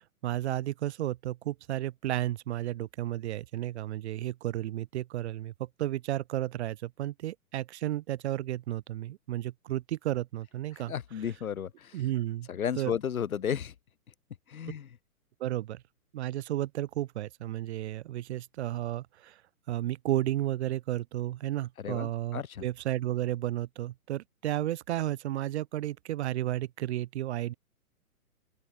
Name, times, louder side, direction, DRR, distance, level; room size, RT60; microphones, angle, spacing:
voice 1, 0.0-10.9 11.9-12.5 12.8-12.9 15.4-15.8 16.1-19.4 19.7-27.5, right 14 dB, 45° right, 2.3 m, -33 dB
voice 2, 10.7-12.0 12.5-13.7 14.5-14.9 21.8-22.7, left 8 dB, 70° left, 2.1 m, -34 dB
open air
hypercardioid pair, 130°, 45 cm